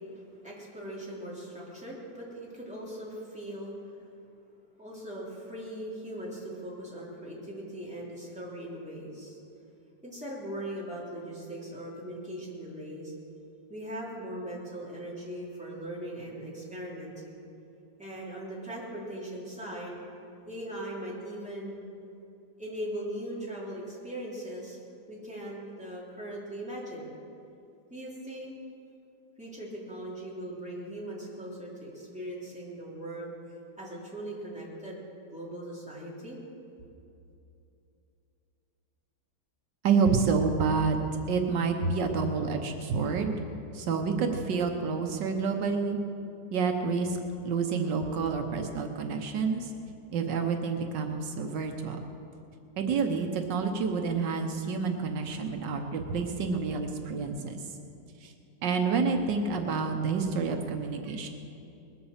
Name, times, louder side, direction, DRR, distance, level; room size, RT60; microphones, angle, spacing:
voice 1, 0.1-4.0 4.8-9.4 10.0-13.1 13.7-17.4 18.0-20.0 20.5-21.8 22.6-24.8 25.1-27.1 27.9-28.5 29.4-33.3 33.8-35.0 35.3-36.4, right 1 dB, 5° right, -6 dB, 3.4 m, -39 dB
voice 2, 39.8-41.0 41.3-43.4 43.7-46.0 46.5-47.2 47.4-49.7 50.1-52.0 52.8-57.6 58.2-58.3 58.6-61.3, right 5 dB, 80° right, 5 dB, 1.6 m, -28 dB
20.5 x 8.4 x 7.2 m, 2.7 s
omnidirectional pair, 1.9 m